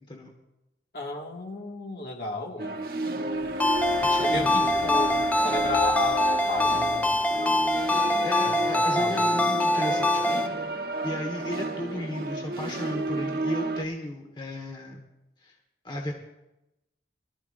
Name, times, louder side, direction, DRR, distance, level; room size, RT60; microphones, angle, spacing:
voice 1, 0.9-2.8 4.2-7.2 8.4-9.3, left 3 dB, 55° left, 0 dB, 2.0 m, -33 dB
sound 1, 2.6-13.8, right 2 dB, 55° right, 1.1 m, -32 dB
sound 2, 3.2-10.3, right 3 dB, 80° right, 1.3 m, -44 dB
Ringtone, 3.6-10.5, left 1 dB, 10° left, 0.6 m, -24 dB
voice 2, 4.0-4.5 8.0-10.4 11.0-15.0 15.4-15.5 15.8-16.1, left 1 dB, 25° left, 1 dB, 1.6 m, -35 dB
22.5 x 13.5 x 2.6 m, 0.93 s
head